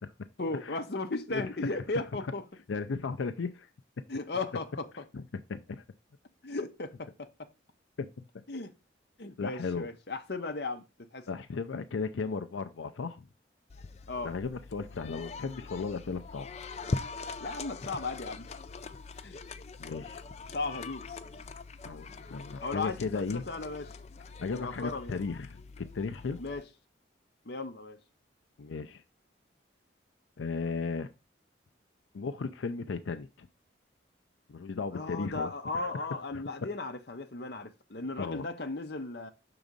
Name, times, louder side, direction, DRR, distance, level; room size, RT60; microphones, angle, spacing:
voice 1, 0.4-2.4 4.1-5.0 6.4-7.5 8.5-8.7 9.2-10.8 11.1-11.3 14.1-14.3 17.4-18.5 19.2-19.4 20.5-21.1 22.6-23.9 24.5-25.2 26.4-26.7 27.4-28.0 34.9-39.3, left 3 dB, 55° left, 0.8 m, -36 dB
voice 2, 2.7-3.7 5.1-5.2 5.5-5.8 8.0-8.1 9.4-9.9 11.3-13.3 14.2-16.5 19.8-20.2 21.8-23.4 24.4-26.4 28.6-29.0 30.4-31.1 32.1-33.5 34.5-35.9 36.3-36.4 38.2-38.5, left 4 dB, 90° left, 0.5 m, -35 dB
sound 1, 13.7-26.6, left 3 dB, 35° left, 0.4 m, -42 dB
6.1 x 3.9 x 5.2 m
head